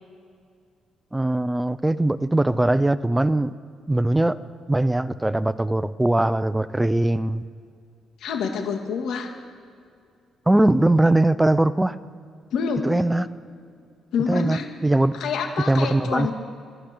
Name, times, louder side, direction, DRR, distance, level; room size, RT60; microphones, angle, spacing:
voice 1, 1.1-3.5 3.9-4.4 4.7-7.4 10.5-12.0 12.8-13.3 14.3-15.2 15.7-16.3, right 1 dB, 10° right, 16 dB, 0.5 m, -21 dB
voice 2, 8.2-9.3 12.5-12.8 14.1-14.7 15.1-16.3, left 6 dB, 80° left, 4 dB, 2.0 m, -27 dB
13.0 x 10.5 x 8.1 m, 2.3 s
cardioid pair, 90°, 0 cm